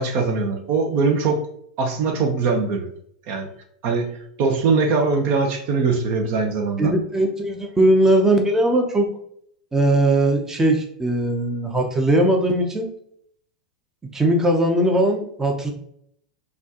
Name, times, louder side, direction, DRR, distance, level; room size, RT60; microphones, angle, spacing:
voice 1, 0.0-1.4 1.8-2.9 3.3-3.5 3.8-4.1 4.4-6.9, right 4 dB, 50° right, 5 dB, 0.7 m, -21 dB
voice 2, 6.8-9.1 9.7-12.9 14.1-15.7, right 1 dB, 10° right, 2 dB, 0.6 m, -19 dB
4.1 x 2.4 x 2.8 m, 0.68 s
hypercardioid pair, 100°, 4 cm